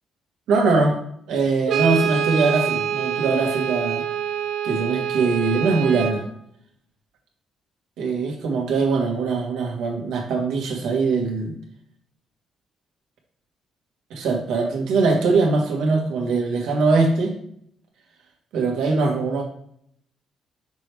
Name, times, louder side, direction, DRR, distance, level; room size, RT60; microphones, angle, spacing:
voice 1, 0.5-1.0 1.3-4.0 4.6-6.3 8.0-11.6 14.1-17.3 18.5-19.4, right 4 dB, 85° right, 1 dB, 1.5 m, -22 dB
Brass instrument, 1.7-6.2, right 9 dB, 65° right, 0.7 m, -25 dB
6.1 x 4.7 x 3.4 m, 0.67 s
cardioid pair, 170°, 0 cm